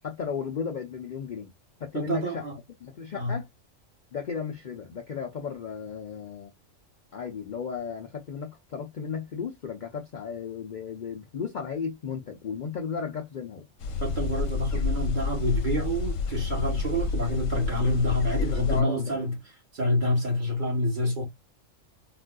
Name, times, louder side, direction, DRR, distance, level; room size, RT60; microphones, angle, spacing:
voice 1, 0.0-1.5 1.8-2.4 2.8-3.5 4.1-6.5 7.1-13.7 18.4-19.2, left 6 dB, 55° left, 0.5 m, -35 dB
voice 2, 1.9-2.6 3.1-3.4 14.0-19.4 19.7-21.2, left 1 dB, 40° right, 1.2 m, -27 dB
sound 1, 13.8-18.8, left 5 dB, 80° left, 1.0 m, -29 dB
3.9 x 2.5 x 2.2 m
omnidirectional pair, 1.3 m